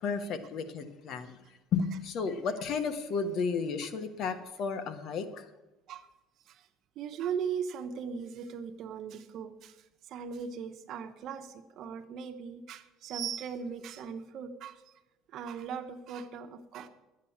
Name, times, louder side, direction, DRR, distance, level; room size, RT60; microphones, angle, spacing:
voice 1, 0.0-1.4 1.7-5.5, left 5 dB, 55° left, 10 dB, 1.3 m, -33 dB
voice 2, 6.9-14.9 15.3-16.9, right 7 dB, 55° right, 8 dB, 1.2 m, -39 dB
12.5 x 9.1 x 7.2 m, 1.1 s
cardioid pair, 125°, 0 cm